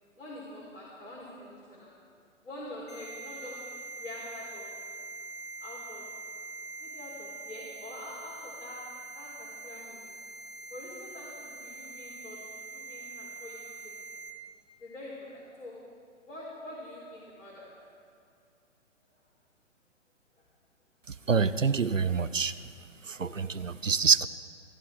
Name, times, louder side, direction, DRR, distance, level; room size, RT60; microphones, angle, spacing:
voice 1, 0.2-1.9 2.4-3.6 4.0-4.7 5.6-6.0 6.8-8.8 9.1-10.2 10.7-14.0 14.8-15.7 16.3-17.7, left 1 dB, 65° left, -6 dB, 3.8 m, -45 dB
sound 1, 2.9-14.3, right 4 dB, 30° left, 2.8 m, -44 dB
voice 2, 21.3-22.5 23.1-24.3, right 5 dB, 90° right, 14 dB, 0.6 m, -26 dB
25.5 x 11.0 x 3.7 m, 2.2 s
figure-of-eight pair, 125°, 38 cm